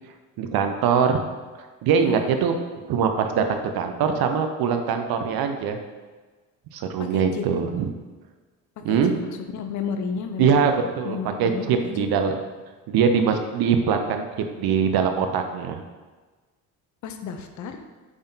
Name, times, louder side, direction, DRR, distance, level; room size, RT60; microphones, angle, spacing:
voice 1, 0.4-1.2 1.8-2.5 2.9-5.8 6.7-7.9 8.8-9.2 10.4-12.3 12.9-15.8, right 6 dB, 55° right, 6 dB, 0.6 m, -22 dB
voice 2, 7.1-7.5 8.9-9.0 9.5-10.5 11.0-11.7 17.0-17.8, left 6 dB, 40° left, 7 dB, 0.5 m, -31 dB
3.6 x 3.4 x 2.7 m, 1.3 s
hypercardioid pair, 55°, 45 cm